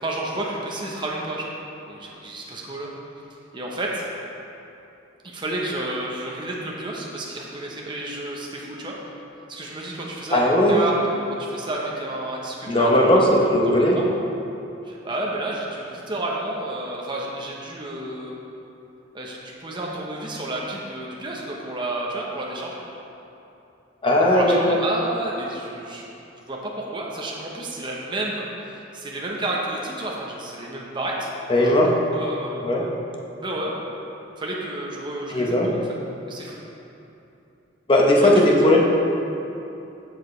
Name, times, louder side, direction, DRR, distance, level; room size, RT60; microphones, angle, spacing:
voice 1, 0.0-1.5 1.8-2.9 3.5-4.1 5.2-8.9 9.5-13.2 13.7-14.1 14.8-18.3 19.1-22.8 24.3-26.1 26.5-31.3 31.6-31.8 32.1-32.6 33.4-33.7 34.4-35.8 36.3-36.6 38.2-38.3 38.6-38.8, right 1 dB, 25° right, -3 dB, 0.9 m, -31 dB
voice 2, 10.3-10.7 12.7-14.0 24.0-24.8 31.5-31.9 32.6-32.8 35.3-35.7 37.9-38.8, left 1 dB, 25° left, -2 dB, 0.9 m, -17 dB
14.5 x 4.9 x 3.2 m, 2.9 s
head